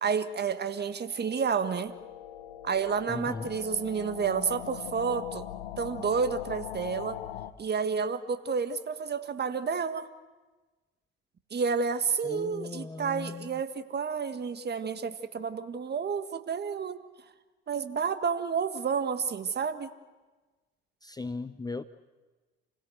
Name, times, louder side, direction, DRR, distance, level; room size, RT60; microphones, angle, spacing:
voice 1, 0.0-1.9 2.6-5.5 5.8-7.2 7.6-10.1 11.5-17.0 17.7-19.9, right 6 dB, 30° right, 10 dB, 1.7 m, -30 dB
sound 1, 0.8-7.5, left 11 dB, 75° left, 1.2 m, -42 dB
voice 2, 3.1-3.5 12.2-13.6 21.0-21.8, left 3 dB, 10° left, 13 dB, 0.7 m, -38 dB
28.5 x 17.0 x 8.0 m, 1.3 s
hypercardioid pair, 65°, 32 cm